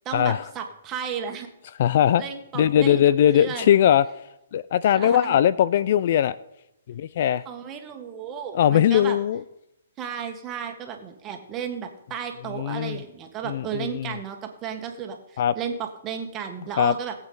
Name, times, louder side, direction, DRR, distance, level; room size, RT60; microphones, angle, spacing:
voice 1, 0.0-1.5 2.2-3.0 3.3-3.7 4.9-5.4 7.4-9.2 10.0-17.1, right 7 dB, 20° right, 4 dB, 1.6 m, -34 dB
voice 2, 1.8-2.2 2.5-4.0 4.5-6.4 6.9-7.4 8.5-9.4 12.6-13.0 13.5-14.1 15.4-15.5 16.8-16.9, left 10 dB, 50° left, 18 dB, 0.3 m, -20 dB
19.5 x 8.2 x 4.0 m, 0.87 s
hypercardioid pair, 150°, 0 cm